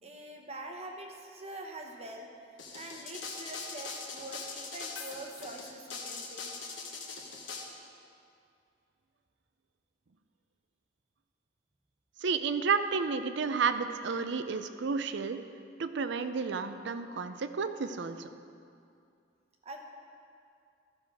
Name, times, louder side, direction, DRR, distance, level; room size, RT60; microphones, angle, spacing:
voice 1, 0.0-6.5 19.6-19.8, right 2 dB, 35° right, 2 dB, 0.8 m, -45 dB
sound 1, 2.6-7.6, left 4 dB, 75° left, 1.2 m, -41 dB
voice 2, 12.2-15.4 15.8-18.3, right 5 dB, 65° right, 10 dB, 0.5 m, -31 dB
13.0 x 6.4 x 4.7 m, 2.4 s
head